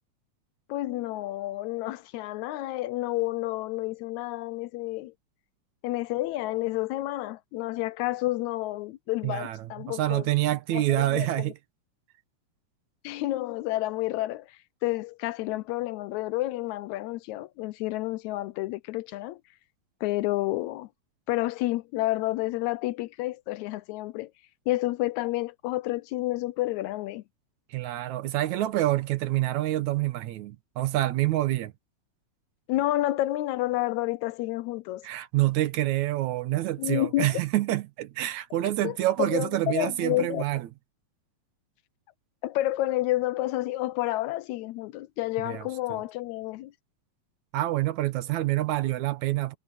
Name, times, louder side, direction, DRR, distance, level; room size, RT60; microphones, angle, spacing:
voice 1, 0.7-5.1 5.8-10.3 10.7-11.5 13.0-19.4 20.0-20.9 21.3-24.3 24.7-27.2 32.7-35.1 36.8-37.4 38.8-40.4 42.4-46.7, left 17 dB, 80° left, 1.8 m, -30 dB
voice 2, 9.2-11.5 27.7-31.7 35.0-40.7 45.5-46.0 47.5-49.6, right 15 dB, 75° right, 2.3 m, -27 dB
omnidirectional pair, 3.5 m